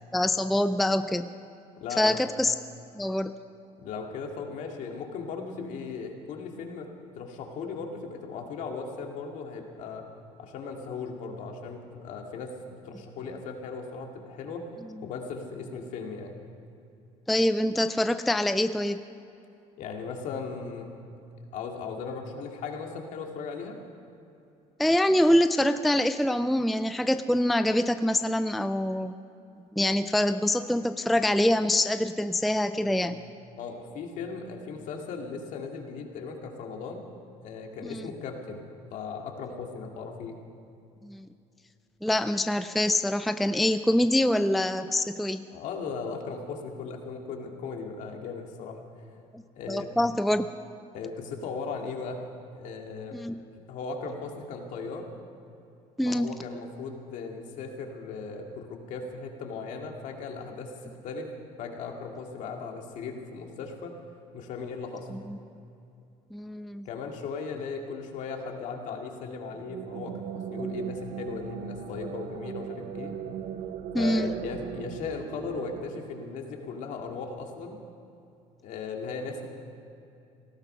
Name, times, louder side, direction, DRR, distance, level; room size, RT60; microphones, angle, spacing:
voice 1, 0.1-1.3 2.0-2.5 3.0-3.3 17.3-19.0 24.8-29.1 29.8-33.2 37.8-38.1 41.0-41.3 42.0-45.5 49.3-49.4 49.7-50.5 53.1-53.4 56.0-56.3 65.1-65.4 66.3-66.9 73.9-74.3, left 1 dB, ahead, 10 dB, 0.4 m, -25 dB
voice 2, 1.8-2.2 3.8-6.9 7.2-10.1 10.4-14.6 15.0-16.5 19.8-20.9 21.5-23.8 32.8-33.1 33.6-37.1 37.4-40.4 45.5-48.8 49.6-49.9 50.9-52.3 52.6-53.2 53.5-55.1 56.1-61.3 61.6-63.9 64.3-65.1 66.9-73.1 74.0-77.8 78.6-79.5, left 5 dB, 60° left, 2 dB, 2.3 m, -37 dB
sound 1, 69.5-76.9, right 8 dB, 60° right, 0.8 m, -38 dB
18.5 x 14.0 x 5.6 m, 2.7 s
cardioid pair, 120°, 14 cm